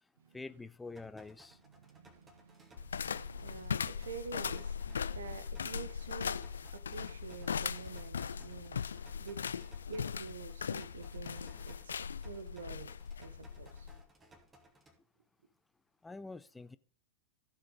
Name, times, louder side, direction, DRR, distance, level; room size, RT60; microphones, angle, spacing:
voice 1, 0.3-1.6 16.0-16.8, left 3 dB, 10° left, 0.5 m, -46 dB
sound 1, 1.0-15.0, right 1 dB, 15° right, 2.7 m, -62 dB
voice 2, 1.7-4.8 5.1-9.5 9.9-12.0 12.2-12.9 13.2-13.9, right 5 dB, 65° right, 1.1 m, -48 dB
sound 2, 2.8-14.0, left 6 dB, 70° left, 0.4 m, -39 dB
15.5 x 6.4 x 3.7 m
figure-of-eight pair, 90°, 0 cm